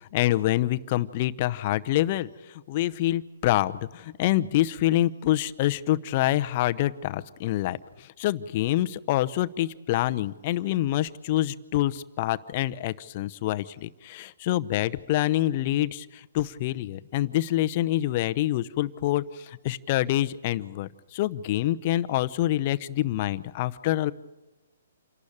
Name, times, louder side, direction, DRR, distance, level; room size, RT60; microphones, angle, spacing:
voice 1, 0.1-2.3 2.7-7.8 8.2-16.1 16.3-19.2 19.6-24.1, left 14 dB, 40° left, 13 dB, 0.8 m, -26 dB
28.0 x 12.0 x 8.7 m, 1.1 s
hypercardioid pair, 150°, 0 cm